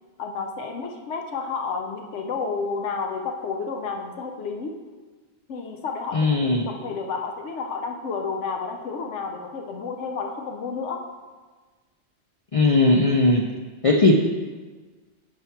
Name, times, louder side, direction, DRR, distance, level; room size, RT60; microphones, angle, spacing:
voice 1, 0.2-4.8 5.5-11.0, left 4 dB, 80° left, 3 dB, 1.1 m, -31 dB
voice 2, 6.1-6.7 12.5-13.4 13.8-14.1, left 2 dB, 50° left, 1 dB, 0.4 m, -18 dB
6.9 x 4.5 x 5.7 m, 1.3 s
omnidirectional pair, 1.2 m